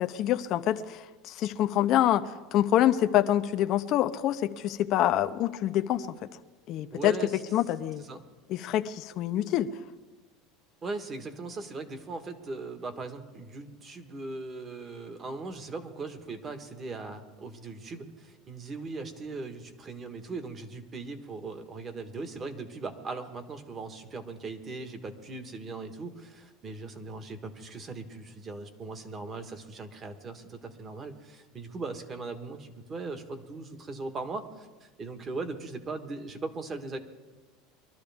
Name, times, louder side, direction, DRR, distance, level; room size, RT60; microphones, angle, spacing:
voice 1, 0.0-6.1 6.7-7.1 7.5-8.0 8.5-9.7, left 12 dB, 45° left, 7 dB, 0.6 m, -26 dB
voice 2, 6.9-7.4 8.0-8.2 10.8-37.0, right 3 dB, 25° right, 7 dB, 1.5 m, -39 dB
23.5 x 13.0 x 3.5 m, 1.2 s
supercardioid pair, 135°, 0 cm